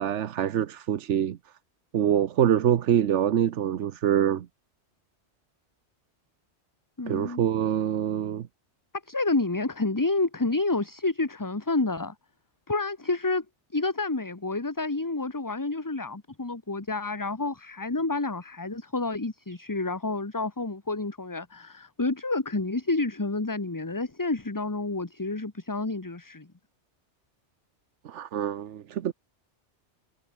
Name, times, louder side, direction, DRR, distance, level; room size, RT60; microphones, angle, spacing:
voice 1, 0.0-1.4 1.9-4.5 7.1-8.4 28.0-29.1, right 10 dB, 85° right, 1.1 m, -25 dB
voice 2, 7.0-7.4 9.1-12.1 12.7-13.4 13.7-26.5, left 3 dB, 20° left, 1.1 m, -29 dB
omnidirectional pair, 1.2 m